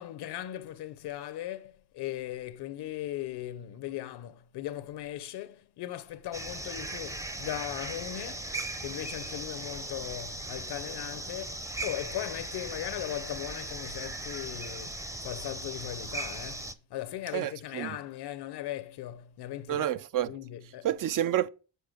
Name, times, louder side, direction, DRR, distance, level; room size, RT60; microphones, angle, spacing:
voice 1, 0.0-19.9 20.3-20.9, left 13 dB, 75° left, 0.8 m, -38 dB
sound 1, 6.3-16.7, right 2 dB, 10° right, 0.6 m, -38 dB
voice 2, 17.3-18.0 19.7-20.4 20.8-21.5, right 12 dB, 55° right, 0.5 m, -29 dB
6.8 x 4.7 x 6.2 m
cardioid pair, 90°, 40 cm